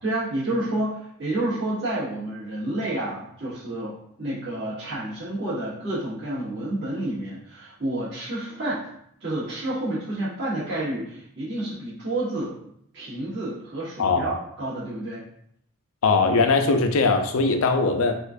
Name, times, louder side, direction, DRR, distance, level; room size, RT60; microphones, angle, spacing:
voice 1, 0.0-3.9 4.2-8.9 9.2-12.5 12.9-15.2, right 1 dB, 55° right, -10 dB, 1.4 m, -29 dB
voice 2, 16.0-18.1, left 3 dB, 70° left, 6 dB, 0.4 m, -20 dB
4.2 x 2.4 x 2.6 m, 0.70 s
head